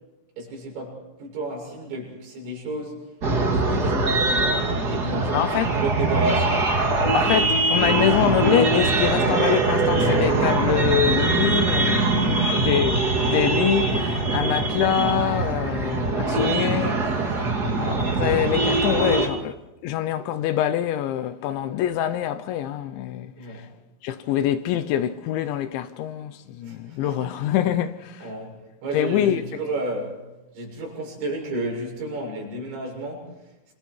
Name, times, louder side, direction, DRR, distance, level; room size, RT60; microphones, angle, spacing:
voice 1, 0.4-3.0 3.4-6.7 12.3-12.7 23.4-23.7 26.6-27.3 28.2-30.2 30.5-33.3, right 1 dB, 65° right, 9.4 m, -32 dB
sound 1, 3.2-19.3, right 3 dB, 30° right, 1.8 m, -22 dB
voice 2, 5.3-5.7 7.1-13.0 13.2-17.5 17.7-19.6 19.8-23.3 24.0-28.3 28.9-29.5, left 10 dB, 75° left, 3.1 m, -25 dB
28.0 x 27.0 x 4.7 m
omnidirectional pair, 5.6 m